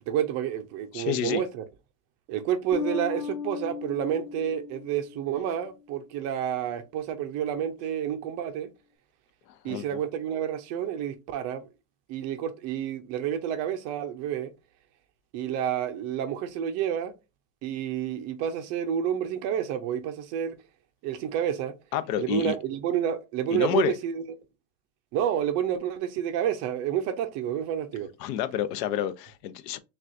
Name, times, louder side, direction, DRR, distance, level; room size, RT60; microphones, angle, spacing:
voice 1, 0.1-1.6 2.3-8.7 9.6-11.7 12.1-14.5 15.3-17.1 17.6-20.6 21.0-21.7 22.2-24.2 25.1-28.1, right 9 dB, 35° right, 0.4 m, -29 dB
voice 2, 0.9-1.4 9.6-9.8 21.9-22.5 23.5-23.9 28.2-29.8, left 10 dB, 75° left, 0.7 m, -28 dB
Bass guitar, 2.7-5.7, left 6 dB, 45° left, 1.5 m, -36 dB
6.2 x 2.3 x 2.5 m
supercardioid pair, 140°, 48 cm